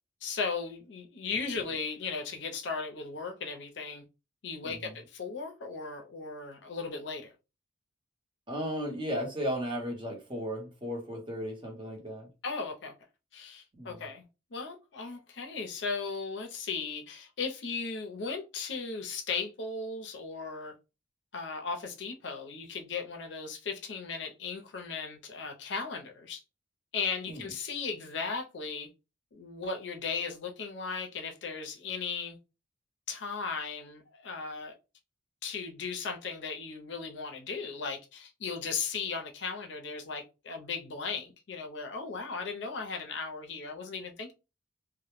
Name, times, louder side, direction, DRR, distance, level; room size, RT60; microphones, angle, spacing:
voice 1, 0.2-4.0 4.4-7.3 12.4-12.9 13.3-14.2 14.5-20.7 21.3-26.4 26.9-28.9 29.3-32.4 33.1-34.8 35.4-44.3, left 5 dB, 65° left, 0.5 m, -36 dB
voice 2, 4.6-5.0 8.5-12.3 13.7-14.1 27.3-27.5, equal, 25° right, 0.7 m, -35 dB
2.1 x 2.0 x 3.0 m
head